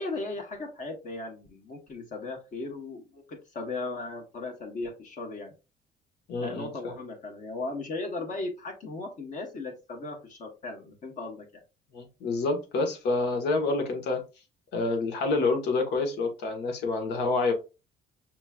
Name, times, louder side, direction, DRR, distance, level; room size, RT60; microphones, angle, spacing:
voice 1, 0.0-5.5 6.4-11.6, left 3 dB, 50° left, 1.2 m, -37 dB
voice 2, 6.3-6.9 11.9-14.2 14.7-17.5, left 3 dB, 80° left, 1.3 m, -28 dB
5.8 x 3.0 x 2.3 m
cardioid pair, 110°, 17 cm